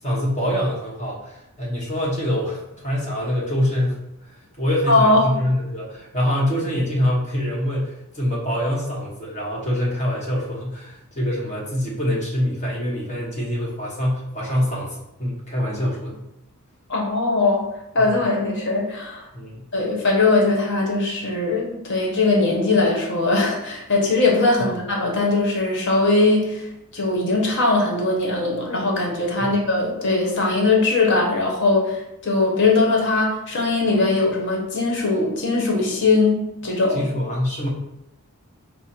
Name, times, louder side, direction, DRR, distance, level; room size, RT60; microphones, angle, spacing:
voice 1, 0.0-4.0 4.3-16.3 18.0-18.2 19.3-19.6 24.6-24.7 29.4-29.6 36.9-37.7, equal, 35° left, -4 dB, 1.2 m, -25 dB
voice 2, 4.9-5.3 16.9-17.6 17.9-19.3 19.7-26.6 26.9-37.0, left 3 dB, 55° left, -1 dB, 1.1 m, -20 dB
5.4 x 2.1 x 4.4 m, 0.87 s
head